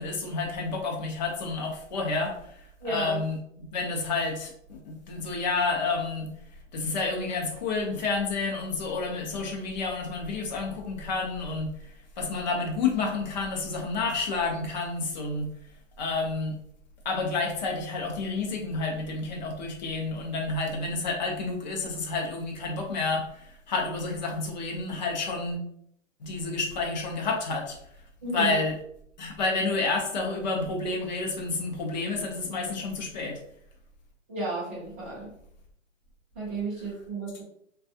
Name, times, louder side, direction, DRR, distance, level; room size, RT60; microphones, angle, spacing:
voice 1, 0.0-6.3 6.7-15.5 16.0-16.6 17.0-25.6 26.2-27.8 28.3-28.8 29.2-33.4, left 3 dB, 35° left, 1 dB, 0.5 m, -30 dB
voice 2, 2.8-3.2 28.2-28.5 34.3-35.3 36.3-37.4, right 2 dB, 10° right, -10 dB, 0.4 m, -33 dB
3.3 x 2.3 x 2.6 m, 0.70 s
hypercardioid pair, 165°, 39 cm